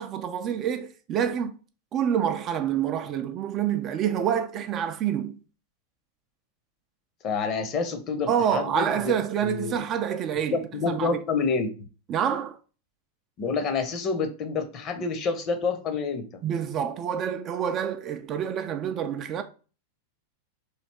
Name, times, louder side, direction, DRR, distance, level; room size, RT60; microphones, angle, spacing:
voice 1, 0.0-1.5 1.9-5.4 8.3-11.2 12.1-12.6 16.4-19.4, right 8 dB, 30° right, 0.4 m, -27 dB
voice 2, 7.2-9.1 9.4-9.8 10.5-11.7 13.4-16.4, left 4 dB, 35° left, 0.8 m, -28 dB
3.2 x 2.8 x 4.3 m
figure-of-eight pair, 90°, 0 cm